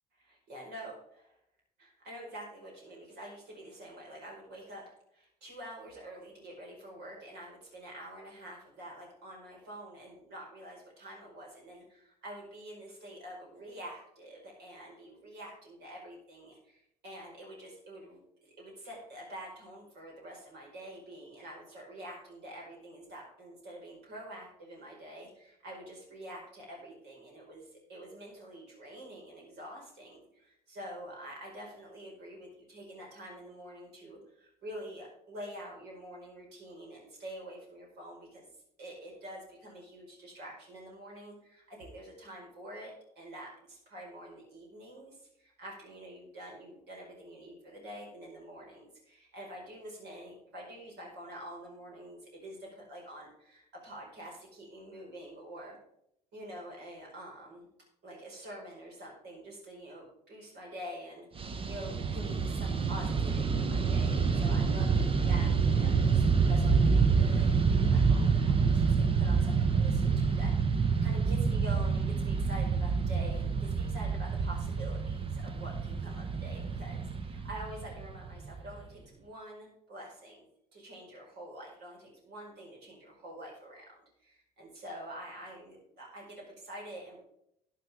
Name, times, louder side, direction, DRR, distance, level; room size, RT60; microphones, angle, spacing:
voice 1, 0.2-1.4 1.8-38.5 38.8-55.8 56.3-57.7 58.0-80.4 80.7-87.2, right 1 dB, 55° right, -2 dB, 5.2 m, -47 dB
Fixed-wing aircraft airplane, 61.4-78.8, right 5 dB, 25° right, 1.2 m, -27 dB
12.0 x 10.5 x 3.6 m, 0.74 s
figure-of-eight pair, 55°, 20 cm